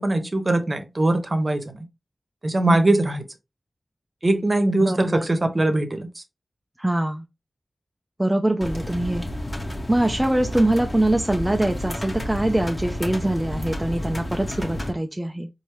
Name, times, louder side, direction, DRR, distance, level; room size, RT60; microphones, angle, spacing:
voice 1, 0.0-1.8 2.4-3.2 4.2-6.1, right 2 dB, 45° right, 1.0 m, -21 dB
voice 2, 4.8-5.2 6.8-7.2 8.2-9.2 9.9-15.5, right 1 dB, 15° right, 0.5 m, -23 dB
sound 1, 8.6-14.9, left 1 dB, 40° left, 1.2 m, -31 dB
4.4 x 2.7 x 3.1 m
cardioid pair, 45°, 0 cm